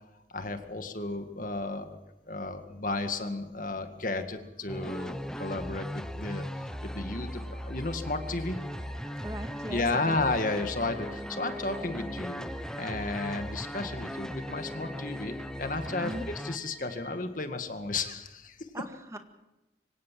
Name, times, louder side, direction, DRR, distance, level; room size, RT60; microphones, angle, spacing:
voice 1, 0.3-2.0 2.3-6.5 6.8-8.6 9.7-15.3 15.6-18.6, left 2 dB, 50° left, 7 dB, 1.9 m, -33 dB
sound 1, 3.9-17.2, right 2 dB, 60° right, 4.8 m, -50 dB
sound 2, 4.7-16.6, equal, 5° left, 0.8 m, -38 dB
voice 2, 9.2-10.3 16.0-16.3 18.7-19.2, right 1 dB, 15° right, 6 dB, 1.9 m, -39 dB
25.0 x 17.0 x 7.6 m, 1.0 s
head